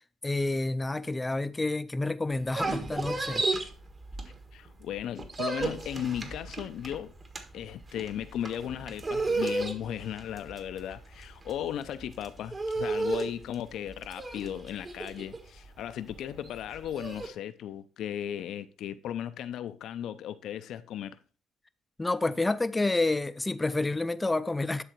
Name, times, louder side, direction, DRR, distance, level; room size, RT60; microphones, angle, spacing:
voice 1, 0.2-3.4 22.0-24.8, left 2 dB, 15° left, 0.5 m, -29 dB
sound 1, 2.3-4.7 5.0-17.3, right 3 dB, 35° right, 1.5 m, -33 dB
voice 2, 4.5-7.1 7.5-21.2, left 10 dB, 80° left, 0.6 m, -36 dB
11.0 x 3.8 x 4.5 m
cardioid pair, 90°, 0 cm